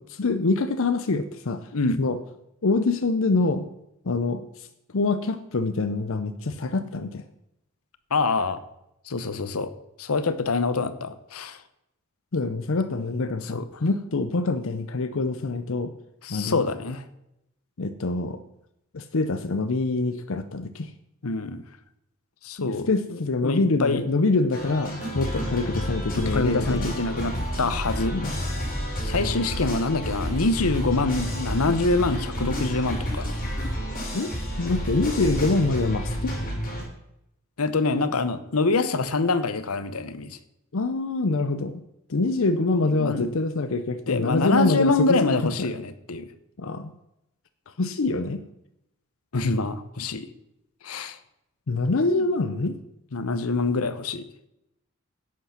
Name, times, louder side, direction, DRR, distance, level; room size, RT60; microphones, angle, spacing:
voice 1, 0.0-1.7 2.0-2.2 2.6-3.7 4.0-4.7 4.9-7.2 12.3-15.9 16.3-16.6 17.8-18.4 18.9-20.9 22.6-26.9 28.1-28.3 34.1-36.4 40.7-41.8 42.1-45.2 45.6-45.7 46.6-46.9 47.8-48.4 51.7-52.8, left 3 dB, 65° left, 10 dB, 0.7 m, -25 dB
voice 2, 8.1-8.6 9.1-9.7 10.0-11.6 13.5-13.6 16.2-17.0 21.2-21.6 22.4-22.9 23.4-24.0 26.2-28.2 29.0-33.4 37.6-40.4 42.8-43.3 44.1-46.3 49.3-50.3 50.8-51.2 53.1-54.2, left 3 dB, 85° left, 13 dB, 0.9 m, -25 dB
sound 1, 24.5-36.8, equal, 40° left, 5.6 m, -30 dB
11.0 x 8.3 x 5.8 m, 0.84 s
head